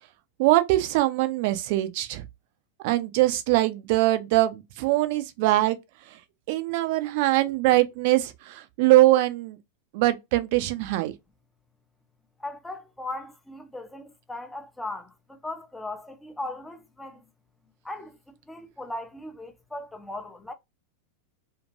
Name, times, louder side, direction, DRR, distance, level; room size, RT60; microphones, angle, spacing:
voice 1, 0.4-2.2 2.8-5.8 6.5-9.6 9.9-11.1, right 17 dB, 50° right, 0.4 m, -22 dB
voice 2, 12.4-17.2 17.8-20.5, left 2 dB, 5° left, 0.6 m, -38 dB
2.6 x 2.4 x 3.0 m
figure-of-eight pair, 90°, 0 cm